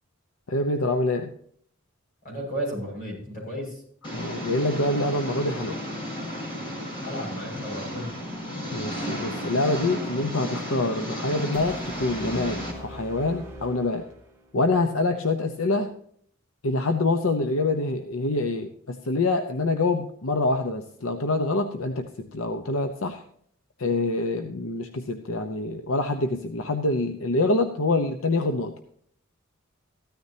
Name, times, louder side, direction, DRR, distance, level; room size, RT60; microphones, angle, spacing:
voice 1, 0.5-1.3 4.1-5.8 8.7-14.0 14.5-15.9 16.6-23.2 23.8-28.7, left 2 dB, 75° left, 7 dB, 0.9 m, -26 dB
voice 2, 2.2-3.8 7.0-8.1, equal, 45° left, -1 dB, 6.4 m, -33 dB
Engine, 4.0-12.7, equal, 25° left, 4.2 m, -33 dB
sound 1, 11.5-14.5, equal, 15° right, 2.1 m, -43 dB
14.5 x 13.0 x 2.8 m, 0.63 s
head